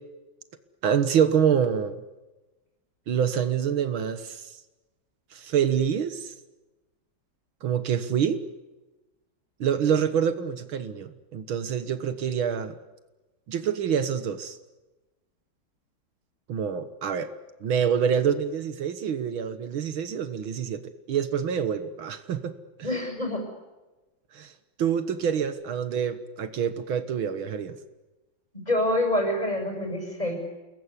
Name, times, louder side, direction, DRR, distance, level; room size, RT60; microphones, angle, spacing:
voice 1, 0.8-2.0 3.1-4.5 5.3-6.3 7.6-8.4 9.6-12.7 13.5-14.6 16.5-17.3 17.6-20.8 21.1-22.5 24.3-24.5 24.8-27.8, right 8 dB, 80° right, 11 dB, 2.2 m, -26 dB
voice 2, 22.8-23.5 28.5-30.4, left 1 dB, 20° left, 4 dB, 7.2 m, -26 dB
29.5 x 21.0 x 9.8 m, 1.1 s
omnidirectional pair, 2.2 m